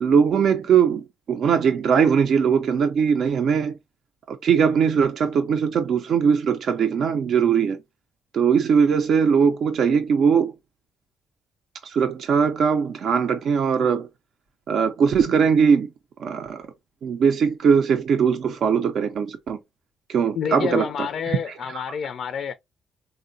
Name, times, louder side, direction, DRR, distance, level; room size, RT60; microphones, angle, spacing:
voice 1, 0.0-3.7 4.3-7.8 8.3-10.5 11.8-14.1 14.7-15.9 16.2-16.7 17.0-19.6 20.1-21.4, right 6 dB, 65° right, 0.4 m, -20 dB
voice 2, 20.3-22.5, left 7 dB, 65° left, 0.3 m, -28 dB
3.7 x 2.1 x 2.6 m
cardioid pair, 90°, 0 cm